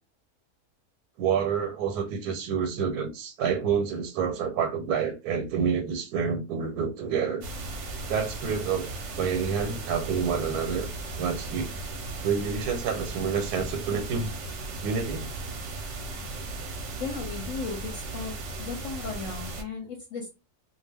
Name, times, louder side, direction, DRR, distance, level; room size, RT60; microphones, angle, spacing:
voice 1, 1.2-7.5 8.1-8.9 9.2-10.9 11.2-11.7 12.2-14.3 14.8-15.3, right 6 dB, 85° right, 1.1 m, -28 dB
sound 1, 7.4-19.6, right 2 dB, 60° right, 0.8 m, -36 dB
voice 2, 17.0-20.3, left 5 dB, 65° left, 0.9 m, -36 dB
2.3 x 2.2 x 3.3 m
omnidirectional pair, 1.6 m